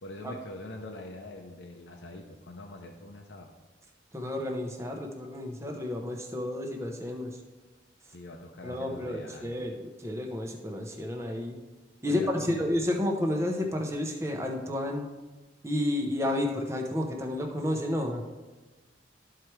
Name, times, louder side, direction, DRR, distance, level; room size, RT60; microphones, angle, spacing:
voice 1, 0.0-3.5 8.1-9.5 12.0-12.7, left 2 dB, 75° left, 1 dB, 0.7 m, -43 dB
voice 2, 4.1-7.3 8.6-11.6 12.0-15.1 15.6-18.2, left 1 dB, 15° right, 2 dB, 0.9 m, -31 dB
13.0 x 4.6 x 3.3 m, 1.3 s
head